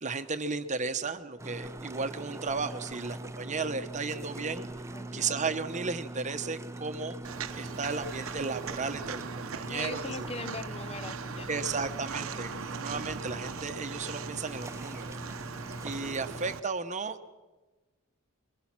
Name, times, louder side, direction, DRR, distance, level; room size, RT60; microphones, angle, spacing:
voice 1, 0.0-4.7 5.1-7.2 7.5-10.3 11.5-15.2 15.8-17.2, right 4 dB, 35° right, 9 dB, 1.0 m, -34 dB
sound 1, 1.4-16.6, right 1 dB, 15° right, 0.6 m, -42 dB
voice 2, 4.9-5.3 9.7-11.5 16.0-16.1, left 3 dB, 30° left, 11 dB, 0.9 m, -41 dB
Walk footsteps, 7.2-16.6, right 6 dB, 70° right, 0.8 m, -40 dB
24.5 x 23.0 x 6.1 m, 1.2 s
head